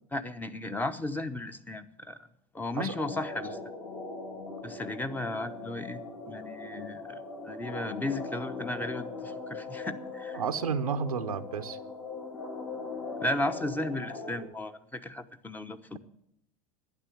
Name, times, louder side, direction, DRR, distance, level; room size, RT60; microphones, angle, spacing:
voice 1, 0.1-2.2 2.5-3.6 4.6-10.4 13.2-16.0, left 1 dB, 10° left, 9 dB, 0.9 m, -35 dB
sound 1, 2.9-14.4, left 3 dB, 70° left, 4.8 m, -40 dB
voice 2, 10.3-11.8, right 6 dB, 90° right, 10 dB, 0.8 m, -31 dB
12.0 x 9.9 x 7.5 m, 0.73 s
hypercardioid pair, 85°, 18 cm